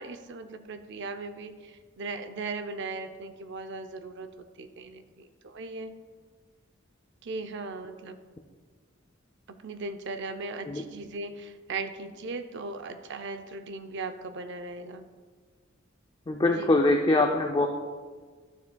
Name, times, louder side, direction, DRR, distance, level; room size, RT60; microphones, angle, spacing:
voice 1, 0.0-5.9 7.2-8.2 9.5-15.0 16.5-16.7, right 3 dB, 60° right, 9 dB, 0.5 m, -38 dB
voice 2, 16.3-17.7, left 2 dB, 25° left, 3 dB, 0.4 m, -23 dB
12.0 x 7.0 x 2.2 m, 1.5 s
head